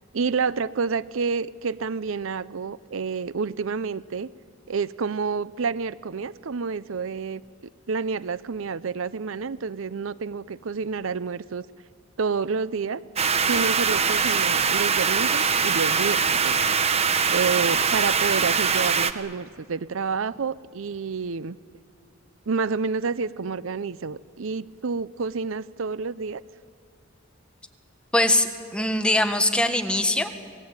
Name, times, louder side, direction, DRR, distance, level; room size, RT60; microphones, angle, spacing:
voice 1, 0.0-4.3 4.7-11.7 12.2-13.0 13.5-16.6 17.3-21.6 22.5-26.4, right 5 dB, 80° right, 18 dB, 0.6 m, -29 dB
sound 1, 13.2-19.1, right 6 dB, 30° right, 0.9 m, -22 dB
voice 2, 28.1-30.4, left 1 dB, 5° left, 6 dB, 1.6 m, -22 dB
27.5 x 19.0 x 8.9 m, 2.4 s
head